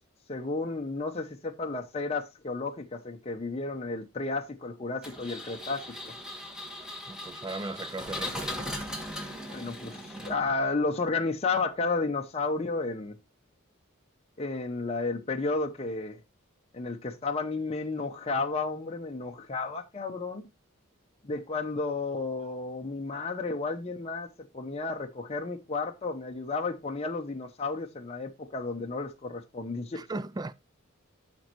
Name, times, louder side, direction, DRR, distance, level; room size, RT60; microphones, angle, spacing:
voice 1, 0.3-6.1 9.5-13.1 14.4-16.2 16.7-20.5 21.2-30.0, left 3 dB, 30° left, 0.7 m, -32 dB
Engine, 5.0-10.7, left 1 dB, 5° right, 1.6 m, -38 dB
voice 2, 7.1-8.7 29.9-30.5, right 2 dB, 20° right, 0.3 m, -37 dB
12.5 x 5.2 x 3.0 m
head